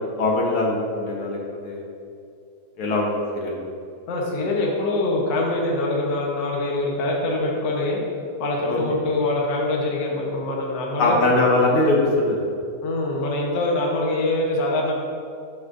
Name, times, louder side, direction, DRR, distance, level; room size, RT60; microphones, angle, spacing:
voice 1, 0.0-1.8 2.8-3.6 8.7-8.8 11.0-12.5, left 2 dB, 75° left, -2 dB, 1.9 m, -21 dB
voice 2, 4.1-8.0 8.4-11.2 12.8-14.9, left 2 dB, 60° left, -2 dB, 1.6 m, -24 dB
10.5 x 6.0 x 2.6 m, 2.5 s
omnidirectional pair, 2.4 m